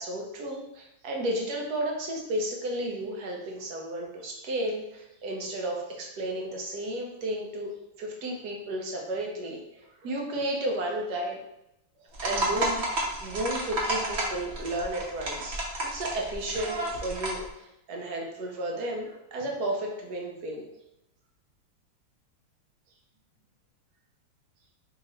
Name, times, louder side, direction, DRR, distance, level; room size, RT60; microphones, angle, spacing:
voice 1, 0.0-7.7 8.0-11.4 12.2-12.8 13.2-20.7, right 1 dB, 60° right, 0 dB, 1.1 m, -33 dB
sound 1, 12.1-17.5, right 1 dB, 90° right, 0.5 m, -31 dB
3.7 x 2.9 x 4.2 m, 0.86 s
omnidirectional pair, 2.4 m